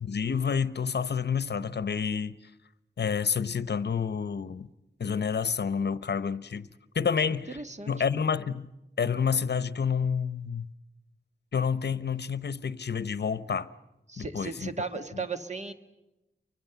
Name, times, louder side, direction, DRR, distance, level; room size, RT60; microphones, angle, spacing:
voice 1, 0.0-2.3 3.0-4.7 5.0-6.7 6.9-7.6 7.9-8.7 9.0-10.7 11.5-13.7 14.2-14.7, left 6 dB, 65° left, 0.8 m, -29 dB
voice 2, 7.5-8.2 14.1-15.7, right 4 dB, 40° right, 1.6 m, -36 dB
29.5 x 24.5 x 7.0 m
wide cardioid pair, 105°, 19 cm